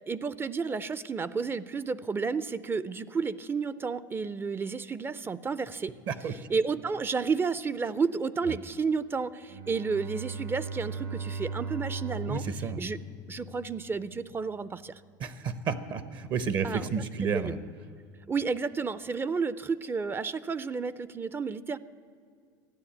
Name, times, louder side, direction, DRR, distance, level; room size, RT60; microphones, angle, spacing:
voice 1, 0.1-5.9 6.5-12.4 12.8-13.0 13.3-15.0 16.6-16.9 17.3-17.5 18.3-21.8, right 5 dB, 20° right, 17 dB, 0.4 m, -31 dB
Bowed string instrument, 9.5-13.8, right 4 dB, 80° right, 4.8 m, -37 dB
voice 2, 12.3-12.8 15.2-17.6, right 6 dB, 50° right, 14 dB, 0.8 m, -31 dB
13.5 x 9.7 x 8.5 m, 2.3 s
supercardioid pair, 95°, 10 cm